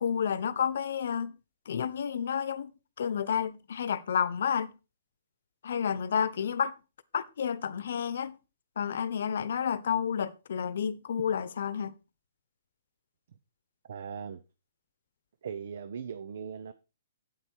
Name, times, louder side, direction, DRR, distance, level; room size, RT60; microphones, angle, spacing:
voice 1, 0.0-1.4 1.7-2.7 3.0-4.7 5.6-6.8 7.1-8.4 8.8-11.9, left 7 dB, 70° left, 0.9 m, -30 dB
voice 2, 13.9-14.4 15.4-16.7, right 7 dB, 65° right, 0.8 m, -39 dB
8.6 x 8.1 x 4.5 m
hypercardioid pair, 145°, 0 cm